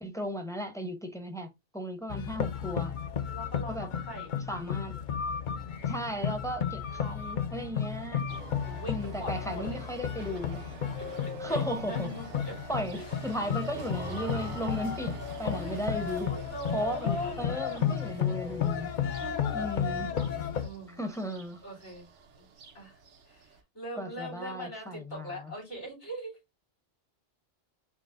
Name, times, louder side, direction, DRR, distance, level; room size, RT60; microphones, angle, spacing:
voice 1, 0.0-2.9 3.7-3.9 4.5-5.0 5.9-8.2 8.9-10.6 11.4-12.1 12.7-16.3 16.7-17.1 17.4-18.9 19.5-20.1 21.0-21.6 24.0-25.5, equal, 5° left, 0.6 m, -35 dB
sound 1, 2.1-20.7, left 8 dB, 55° left, 0.6 m, -33 dB
voice 2, 3.2-4.3 5.6-6.1 8.1-9.8 11.0-11.1 11.4-12.5 12.9-13.1 13.4-13.5 15.4-15.8 16.2-17.5 19.2-21.2 21.6-22.1 22.4-22.5 22.7-23.0 23.3-26.3, right 1 dB, 80° left, 3.6 m, -42 dB
sound 2, 8.3-23.6, right 5 dB, 80° right, 1.1 m, -47 dB
6.1 x 2.1 x 3.5 m
omnidirectional pair, 1.2 m